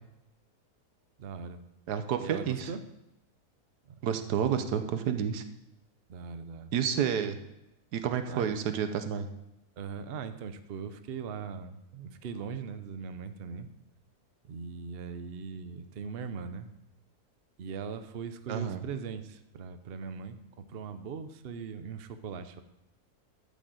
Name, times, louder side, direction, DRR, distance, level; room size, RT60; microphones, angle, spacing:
voice 1, 1.2-1.6 2.2-2.8 3.8-4.0 6.1-6.7 8.3-8.5 9.8-13.7 14.4-16.7 17.6-22.6, right 5 dB, 50° right, 10 dB, 0.8 m, -40 dB
voice 2, 1.9-2.7 4.0-5.4 6.7-7.4 7.9-9.3 18.5-18.8, right 8 dB, 90° right, 8 dB, 1.4 m, -30 dB
12.5 x 5.4 x 7.8 m, 0.92 s
omnidirectional pair, 1.7 m